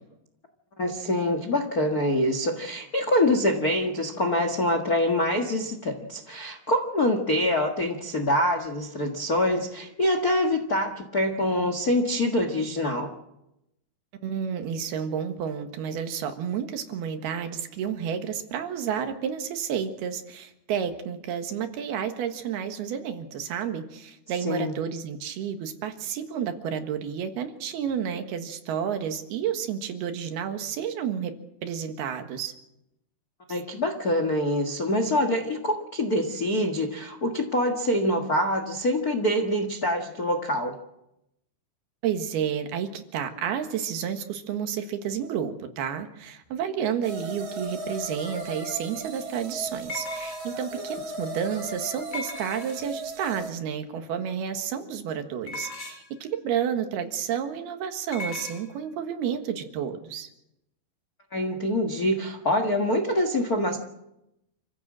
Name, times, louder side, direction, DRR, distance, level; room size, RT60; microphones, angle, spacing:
voice 1, 0.8-13.1 24.4-24.7 33.5-40.7 61.3-63.8, left 1 dB, 85° left, 6 dB, 0.8 m, -25 dB
voice 2, 14.2-32.5 42.0-60.3, right 8 dB, 70° right, 7 dB, 3.4 m, -31 dB
sound 1, 47.0-53.5, right 2 dB, 40° right, 2.0 m, -37 dB
sound 2, 48.3-48.4 49.9-50.7 52.1-53.0 55.5-56.2 58.1-58.6, left 2 dB, 35° left, 2.4 m, -37 dB
28.0 x 15.5 x 7.5 m, 0.87 s
omnidirectional pair, 4.8 m